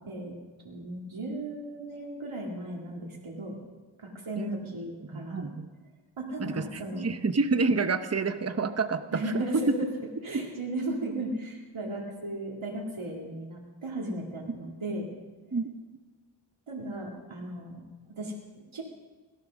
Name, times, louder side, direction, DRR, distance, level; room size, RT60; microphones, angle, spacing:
voice 1, 0.6-3.6 4.0-5.5 6.2-7.1 9.1-9.9 10.2-15.1 16.7-17.8 18.1-18.8, right 1 dB, 85° right, -2 dB, 2.3 m, -36 dB
voice 2, 5.1-5.7 6.4-9.5 15.5-15.7, right 4 dB, 30° right, 9 dB, 0.8 m, -29 dB
17.5 x 12.5 x 6.3 m, 1.3 s
wide cardioid pair, 60°, 47 cm